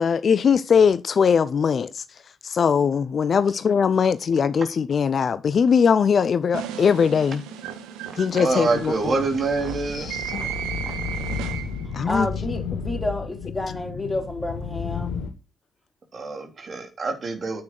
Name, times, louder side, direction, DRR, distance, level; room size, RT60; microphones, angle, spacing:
voice 1, 0.0-2.0 2.4-7.4 8.2-9.1 9.9-10.5 11.9-12.3, left 6 dB, 50° left, 0.6 m, -21 dB
sound 1, 6.5-12.0, right 9 dB, 75° right, 1.3 m, -34 dB
voice 2, 8.4-10.1 16.1-17.6, right 3 dB, 50° right, 3.3 m, -25 dB
sound 2, 8.5-15.3, left 6 dB, 75° left, 1.7 m, -33 dB
voice 3, 12.1-15.2, left 2 dB, 20° left, 3.8 m, -29 dB
9.5 x 8.6 x 4.6 m
hypercardioid pair, 45°, 0 cm